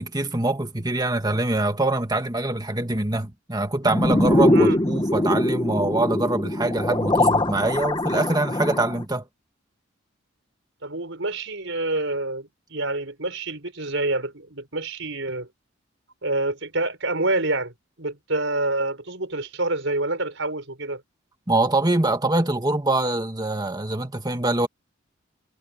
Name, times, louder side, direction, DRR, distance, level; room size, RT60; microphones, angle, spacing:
voice 1, 0.0-9.3 21.5-24.7, right 2 dB, 20° right, 2.0 m, -24 dB
sound 1, 3.8-9.0, left 1 dB, 20° left, 1.1 m, -22 dB
voice 2, 10.8-15.5 16.2-17.7 18.0-21.0, right 2 dB, 65° right, 5.7 m, -27 dB
head